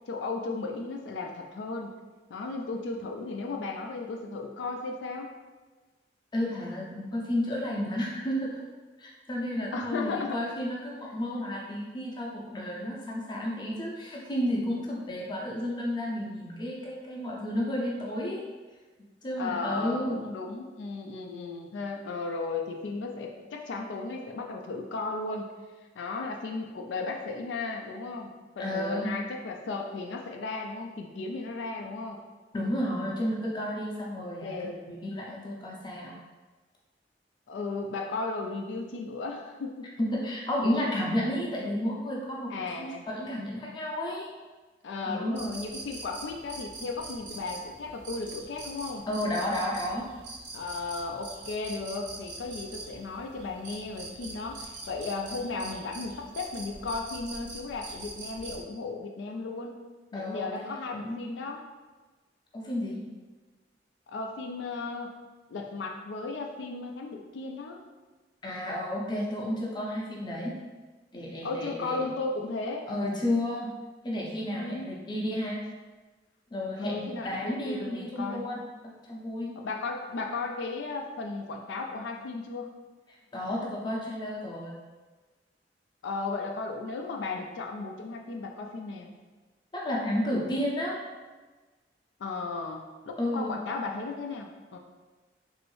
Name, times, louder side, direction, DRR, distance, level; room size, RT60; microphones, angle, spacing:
voice 1, 0.1-1.9 2.3-5.3 9.7-10.4 19.4-25.5 26.0-32.2 34.4-34.8 37.5-39.9 42.5-43.1 44.8-49.0 50.5-59.8 60.1-61.6 64.1-65.1 65.5-67.8 71.4-72.9 74.5-74.9 76.8-78.5 79.6-82.7 86.0-89.1 92.2-94.8, left 3 dB, 85° left, 2 dB, 0.4 m, -35 dB
voice 2, 6.3-8.6 9.0-18.4 19.2-20.2 28.6-29.1 32.5-36.2 40.0-44.3 45.0-45.5 49.1-50.0 60.1-60.6 61.0-61.2 62.5-63.0 68.4-70.5 71.1-72.1 72.9-73.7 74.0-75.6 76.5-79.5 83.3-84.8 89.7-91.0 93.2-93.5, left 1 dB, 25° left, -3 dB, 0.5 m, -32 dB
sound 1, 45.3-58.6, right 2 dB, 75° right, 0.6 m, -43 dB
3.0 x 2.6 x 3.1 m, 1.3 s
head